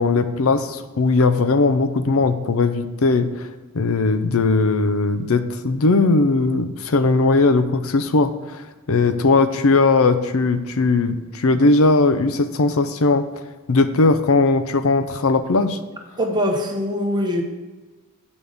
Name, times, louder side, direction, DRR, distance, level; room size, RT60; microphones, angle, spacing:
voice 1, 0.0-13.3 13.7-15.8, left 3 dB, 65° left, 10 dB, 0.6 m, -18 dB
voice 2, 16.2-17.4, equal, 20° right, 2 dB, 1.1 m, -22 dB
9.2 x 5.3 x 6.5 m, 1.2 s
head